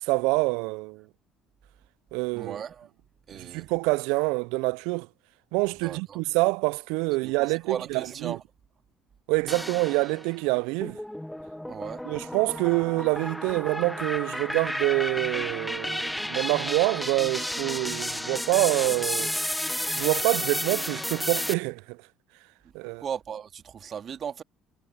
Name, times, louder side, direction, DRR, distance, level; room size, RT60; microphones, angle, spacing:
voice 1, 0.0-1.1 2.1-2.6 3.3-5.1 5.5-8.4 9.3-11.0 12.0-19.3 20.0-22.0 22.7-23.0, right 27 dB, 75° right, 0.4 m, -26 dB
voice 2, 2.3-2.9 3.3-3.7 5.8-6.2 7.2-8.4 11.7-12.0 23.0-24.4, right 8 dB, 45° right, 2.2 m, -36 dB
sound 1, 9.5-10.3 10.8-21.5, left 1 dB, 5° left, 0.3 m, -32 dB
hypercardioid pair, 65°, 0 cm